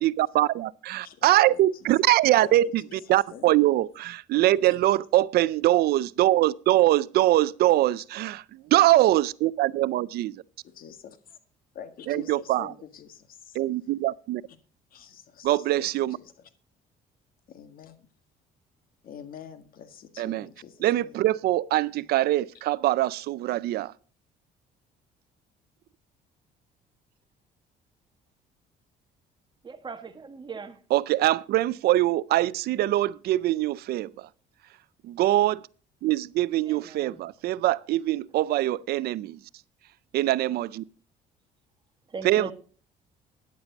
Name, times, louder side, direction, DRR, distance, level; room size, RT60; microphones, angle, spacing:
voice 1, 0.0-8.4 8.7-10.4 12.1-12.7 13.6-14.4 15.4-16.2 20.2-20.5 20.8-23.9 30.9-34.3 35.0-35.6 36.0-39.4 40.1-40.8 42.2-42.5, right 15 dB, 70° right, 0.4 m, -23 dB
voice 2, 1.0-1.9 2.4-2.5 2.9-3.8 4.3-4.8 10.6-11.4 11.7-13.6 14.9-16.3 17.5-18.1 19.0-21.2 21.9-22.1, left 8 dB, 60° left, 1.8 m, -46 dB
voice 3, 29.6-30.8 36.7-37.2 42.1-42.5, right 4 dB, 25° right, 1.5 m, -39 dB
13.5 x 10.5 x 3.9 m
cardioid pair, 110°, 17 cm